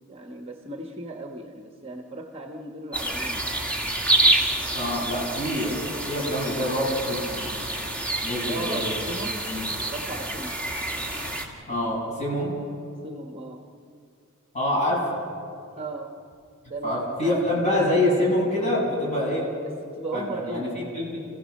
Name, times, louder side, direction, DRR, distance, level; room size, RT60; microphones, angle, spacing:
voice 1, 0.1-3.6 8.5-9.5 9.9-10.6 13.0-13.6 15.8-16.2 16.7-17.6 19.6-20.8, right 2 dB, 25° right, 4 dB, 1.2 m, -36 dB
sound 1, 2.9-11.5, right 1 dB, 5° left, 2.2 m, -27 dB
voice 2, 4.7-7.5 8.2-8.9 9.5-9.7 11.7-12.5 14.5-15.2 16.8-19.5 20.1-20.7 20.9-21.2, left 1 dB, 30° left, -4 dB, 6.9 m, -26 dB
28.5 x 16.5 x 6.5 m, 2.3 s
head